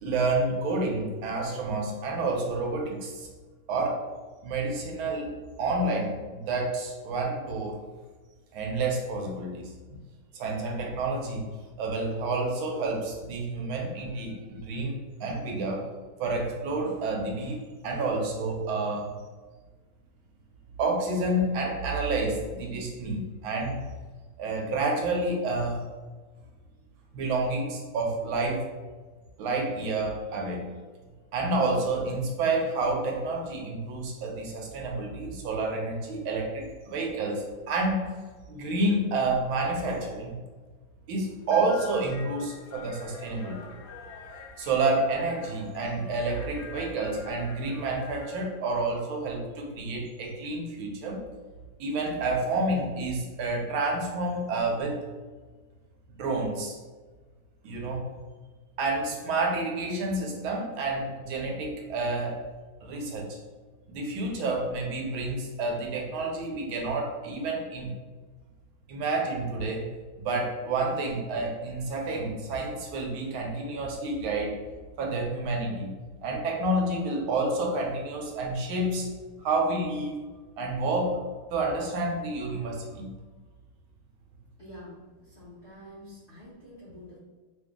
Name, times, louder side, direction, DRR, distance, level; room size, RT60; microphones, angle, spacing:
voice 1, 0.0-3.3 3.7-4.0 4.4-5.3 5.6-7.8 8.5-9.7 10.3-11.5 11.8-15.8 16.2-19.1 20.8-23.8 24.4-25.8 27.1-28.6 29.4-30.7 31.3-38.1 38.5-40.3 41.1-43.6 44.6-51.2 51.8-55.0 56.1-56.8 57.6-58.0 58.8-62.4 62.8-63.4 63.9-67.9 68.9-69.8 70.2-74.6 75.0-75.9 76.2-79.1 79.4-80.2 80.6-81.2 81.5-83.1, right 2 dB, 75° right, 1 dB, 1.5 m, -29 dB
sound 1, 41.3-48.5, left 4 dB, 80° left, 1.4 m, -46 dB
voice 2, 84.6-87.2, left 1 dB, 50° left, -8 dB, 0.8 m, -47 dB
3.3 x 2.6 x 3.5 m, 1.4 s
omnidirectional pair, 2.3 m